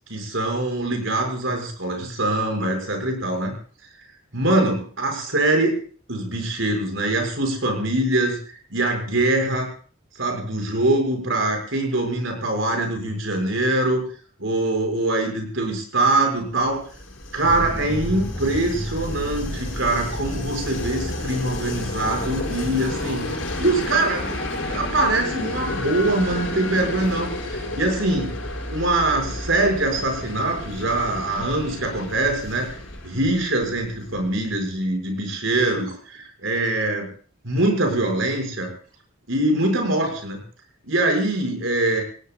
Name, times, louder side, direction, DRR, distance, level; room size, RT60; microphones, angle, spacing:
voice 1, 0.1-3.5 4.3-5.7 6.1-9.7 10.1-14.1 14.4-16.9 17.3-23.3 23.6-24.4 24.7-28.3 28.7-32.7 33.0-37.1 37.4-38.7 39.3-40.4 40.8-42.0, right 2 dB, 65° right, 2 dB, 5.9 m, -23 dB
Train, 16.6-34.4, left 1 dB, 60° left, 6.2 m, -31 dB
sound 1, 17.4-23.1, equal, ahead, 2.1 m, -34 dB
28.0 x 17.5 x 2.4 m, 0.43 s
head